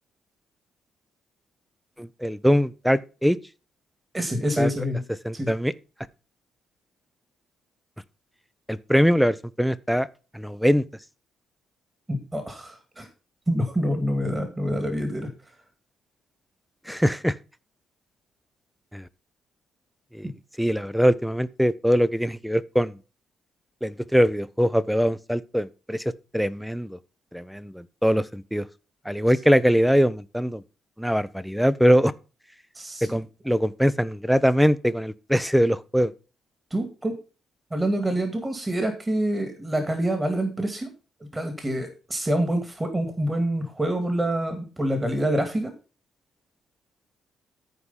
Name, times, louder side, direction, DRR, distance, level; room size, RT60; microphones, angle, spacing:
voice 1, 2.0-3.4 4.6-4.7 5.2-5.7 8.7-10.1 10.3-10.8 16.9-17.4 18.9-19.1 20.1-20.3 20.6-23.0 23.8-27.0 27.3-28.7 29.0-30.6 31.0-32.1 33.0-36.1, equal, ahead, 0.7 m, -22 dB
voice 2, 4.1-5.0 5.3-5.5 12.1-13.1 13.5-15.3 20.2-20.3 32.7-33.2 36.7-37.1 37.7-40.9 41.2-45.7, right 1 dB, 15° right, 2.2 m, -26 dB
13.5 x 4.8 x 5.7 m
cardioid pair, 90°, 0 cm